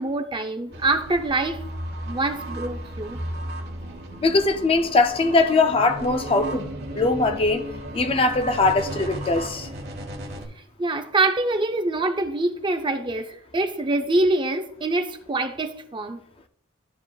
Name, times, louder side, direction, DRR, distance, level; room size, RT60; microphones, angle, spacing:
voice 1, 0.0-1.6 2.1-3.2 10.8-16.2, right 2 dB, 25° right, 0.5 m, -25 dB
sound 1, 0.7-10.5, right 1 dB, 50° right, 1.2 m, -35 dB
voice 2, 4.2-6.7 7.0-7.6 7.9-9.7, left 3 dB, 25° left, 0.4 m, -21 dB
12.0 x 4.9 x 2.3 m
head